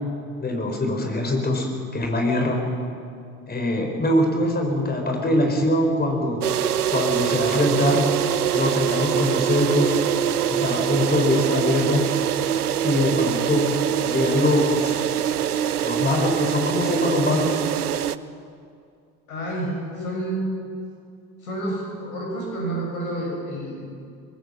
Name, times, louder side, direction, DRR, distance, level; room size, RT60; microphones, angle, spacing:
voice 1, 0.4-1.7 1.9-2.6 3.5-6.4 6.9-8.1 8.5-9.9 10.5-12.0 12.8-13.7 14.0-15.1 15.8-17.6, left 1 dB, 20° left, 2 dB, 5.1 m, -22 dB
sound 1, 6.4-18.2, right 10 dB, 85° right, 0.6 m, -24 dB
voice 2, 19.3-20.4 21.4-23.8, right 1 dB, 75° left, -2 dB, 7.3 m, -29 dB
25.0 x 20.5 x 5.9 m, 2.3 s
figure-of-eight pair, 60°, 44 cm